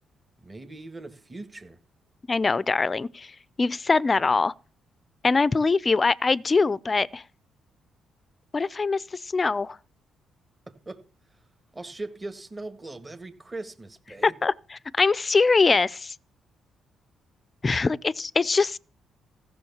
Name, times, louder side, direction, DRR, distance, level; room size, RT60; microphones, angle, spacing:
voice 1, 0.4-1.8 10.7-11.0 11.3-11.4 11.7-14.4, right 2 dB, 20° right, 1.6 m, -40 dB
voice 2, 2.3-3.3 3.6-4.5 5.2-7.2 8.5-9.8 14.2-16.1 17.6-18.8, left 4 dB, 30° left, 0.5 m, -23 dB
15.0 x 6.4 x 7.1 m
cardioid pair, 90°, 0 cm